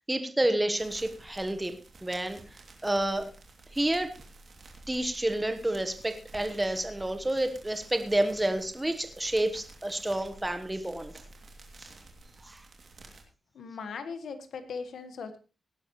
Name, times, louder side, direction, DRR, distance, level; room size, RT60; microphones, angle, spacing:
voice 1, 0.0-2.4 2.8-3.3 3.7-4.1 4.9-11.1 11.8-11.9 12.4-12.6, right 1 dB, 10° right, 8 dB, 1.3 m, -29 dB
sound 1, 0.8-13.2, right 2 dB, 45° right, 2.8 m, -51 dB
voice 2, 13.5-15.4, left 5 dB, 80° left, 8 dB, 1.6 m, -39 dB
18.0 x 11.0 x 3.2 m, 0.33 s
wide cardioid pair, 175°, 0 cm